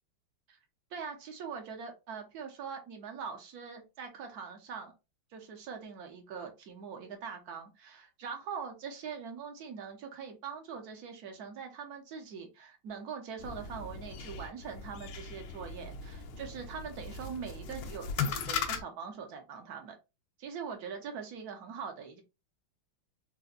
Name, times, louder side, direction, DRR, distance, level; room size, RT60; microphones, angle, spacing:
voice 1, 0.9-4.9 5.3-20.0 20.4-22.2, right 6 dB, 65° right, 4 dB, 1.0 m, -42 dB
sound 1, 13.4-18.8, left 6 dB, 75° left, 1.1 m, -38 dB
4.2 x 2.1 x 2.4 m, 0.26 s
omnidirectional pair, 2.3 m